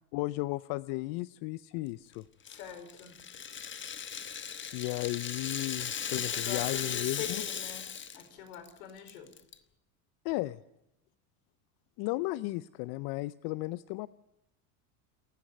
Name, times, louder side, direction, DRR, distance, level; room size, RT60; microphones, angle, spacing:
voice 1, 0.1-2.2 4.7-7.4 10.2-10.6 12.0-14.1, left 20 dB, 60° left, 17 dB, 0.7 m, -34 dB
voice 2, 2.5-3.2 6.1-7.9 8.1-9.3, left 9 dB, 75° left, 8 dB, 4.5 m, -43 dB
Rattle (instrument), 2.5-8.3 8.5-8.7 9.1-9.5, left 7 dB, 25° left, 1.3 m, -37 dB
28.5 x 10.0 x 9.6 m, 0.86 s
supercardioid pair, 100°, 45 cm